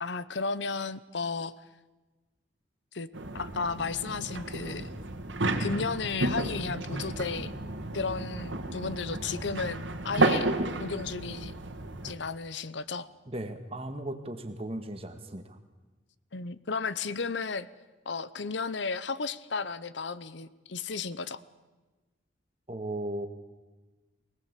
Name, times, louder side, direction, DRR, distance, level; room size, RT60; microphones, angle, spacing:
voice 1, 0.0-1.5 2.9-3.1 3.3-4.9 5.6-7.5 7.9-10.5 10.8-11.5 12.0-13.1 16.3-17.7 18.1-21.4, left 4 dB, 70° left, 16 dB, 0.8 m, -33 dB
sound 1, 3.1-12.1, right 2 dB, 75° right, 2.0 m, -32 dB
voice 2, 13.3-15.6 22.7-23.3, right 1 dB, 30° right, 7 dB, 1.8 m, -36 dB
24.0 x 18.5 x 8.3 m, 1.2 s
head